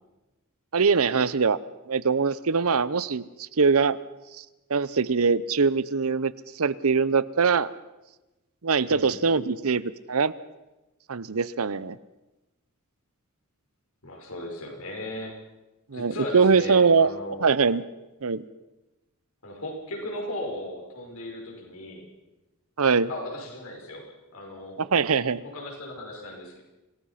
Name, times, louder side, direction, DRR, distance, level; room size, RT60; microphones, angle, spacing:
voice 1, 0.7-1.6 1.9-4.0 4.7-6.3 6.6-7.7 8.6-9.8 10.1-10.3 11.1-12.0 15.9-17.1 17.4-17.8 18.2-18.4 22.8-23.1 24.8-25.4, right 5 dB, 70° right, 18 dB, 0.8 m, -22 dB
voice 2, 8.9-9.2 14.0-15.3 15.9-17.5 19.4-22.1 23.1-24.8 25.4-26.6, left 1 dB, 75° left, 0 dB, 6.0 m, -37 dB
26.5 x 18.0 x 5.8 m, 1.0 s
head